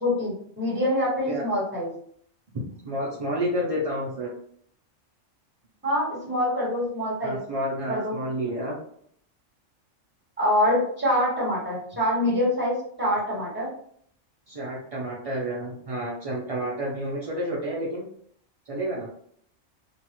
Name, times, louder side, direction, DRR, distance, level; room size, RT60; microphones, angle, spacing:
voice 1, 0.0-1.9 5.8-7.4 7.9-8.1 10.4-12.7 13.0-13.7, left 1 dB, 10° right, -6 dB, 1.2 m, -25 dB
voice 2, 2.8-4.3 7.2-8.8 14.5-18.0 18.7-19.1, equal, 50° right, -5 dB, 0.4 m, -30 dB
2.8 x 2.3 x 2.9 m, 0.63 s
omnidirectional pair, 1.3 m